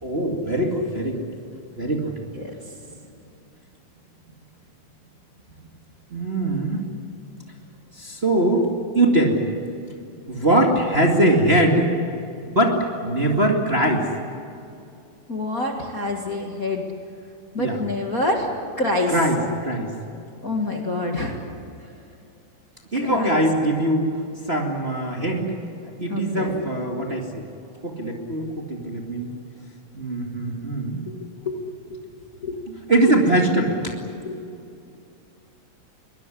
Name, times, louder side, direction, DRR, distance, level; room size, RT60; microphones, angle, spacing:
voice 1, 0.0-1.2 1.8-2.1 6.1-6.8 8.0-8.7 8.9-9.4 10.3-11.9 12.4-14.0 17.6-17.8 19.1-19.9 22.9-24.1 24.5-25.5 26.0-27.4 27.8-29.3 29.9-31.0 32.7-33.9, right 1 dB, 20° right, 0 dB, 2.1 m, -22 dB
voice 2, 15.3-16.8 17.5-18.5 18.8-19.1 20.4-21.4 22.9-23.4 26.1-26.6 31.5-31.6 32.4-32.5 34.2-34.4, left 2 dB, 35° left, 0 dB, 1.9 m, -26 dB
23.0 x 21.0 x 10.0 m, 2.5 s
omnidirectional pair, 3.4 m